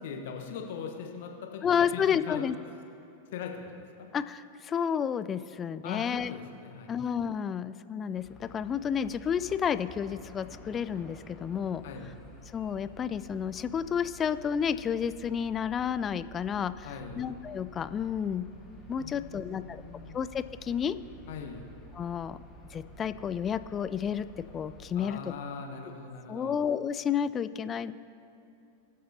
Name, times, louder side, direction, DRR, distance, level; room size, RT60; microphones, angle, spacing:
voice 1, 0.0-2.4 3.3-4.1 5.8-7.0 11.8-12.2 16.8-17.3 19.0-20.2 21.3-21.7 24.9-26.6, left 6 dB, 55° left, 2 dB, 1.2 m, -41 dB
voice 2, 1.6-2.6 4.1-6.3 6.9-11.8 12.5-16.9 17.2-18.5 18.9-19.8 20.1-20.9 22.0-22.4 22.7-24.3 24.5-25.2 26.3-27.9, left 8 dB, 25° left, 14 dB, 0.3 m, -31 dB
sound 1, 8.1-24.9, equal, 10° left, 2.7 m, -51 dB
22.0 x 7.5 x 2.8 m, 2.6 s
figure-of-eight pair, 90°, 0 cm